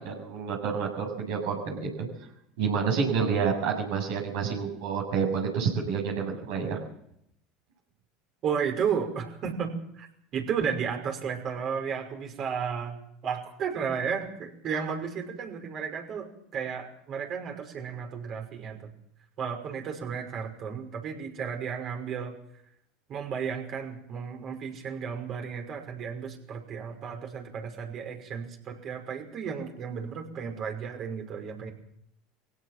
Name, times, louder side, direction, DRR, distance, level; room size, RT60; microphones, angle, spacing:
voice 1, 0.0-2.1 2.6-6.8, right 6 dB, 70° right, 0 dB, 7.6 m, -29 dB
voice 2, 8.4-10.1 10.3-12.9 13.2-18.9 19.4-22.4 23.1-31.7, right 6 dB, 45° right, 3 dB, 5.6 m, -33 dB
22.0 x 17.0 x 7.6 m, 0.75 s
hypercardioid pair, 80°, 0 cm